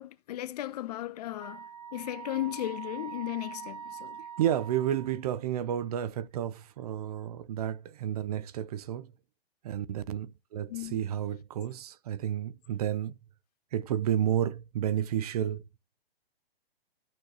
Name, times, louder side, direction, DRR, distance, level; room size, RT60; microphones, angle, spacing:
voice 1, 0.0-1.6 1.9-4.2 10.7-11.0, left 14 dB, 40° left, 0.7 m, -36 dB
Wind instrument woodwind instrument, 1.4-5.3, right 8 dB, 15° right, 3.5 m, -43 dB
voice 2, 4.4-9.1 9.6-13.1 13.7-15.6, right 10 dB, 40° right, 0.5 m, -31 dB
13.5 x 6.3 x 2.8 m
hypercardioid pair, 140°, 31 cm